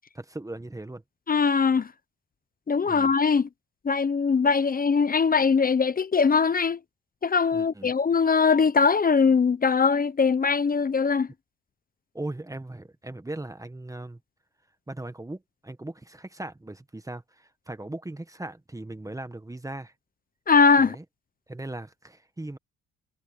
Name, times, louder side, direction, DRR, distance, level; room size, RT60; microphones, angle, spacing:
voice 1, 0.1-1.0 2.8-3.1 7.5-7.9 12.1-14.2 14.9-19.9 20.8-21.0 21.5-22.6, right 2 dB, 10° right, 1.5 m, -38 dB
voice 2, 1.3-1.9 2.7-3.5 3.8-6.8 7.2-11.3 20.5-21.0, left 5 dB, 30° left, 0.8 m, -21 dB
cardioid pair, 90°, 30 cm